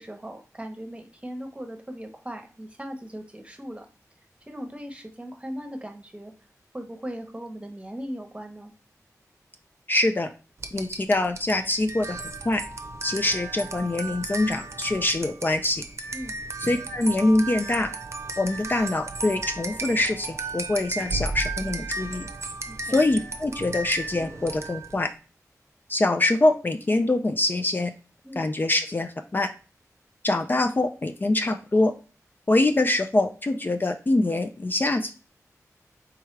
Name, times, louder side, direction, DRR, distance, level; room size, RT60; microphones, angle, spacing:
voice 1, 0.0-3.9 4.5-6.3 6.7-8.7 16.1-16.4 22.7-23.0 28.2-28.5, equal, 20° right, 5 dB, 0.9 m, -38 dB
voice 2, 9.9-10.3 10.7-12.6 13.0-15.8 16.6-17.9 18.4-22.3 22.8-25.1 25.9-27.9 28.4-29.5 30.2-31.9 32.5-35.1, left 2 dB, 35° left, 6 dB, 0.4 m, -24 dB
sound 1, 10.6-25.0, right 3 dB, 50° right, 0.6 m, -35 dB
4.6 x 3.6 x 3.2 m, 0.34 s
wide cardioid pair, 85°, 6 cm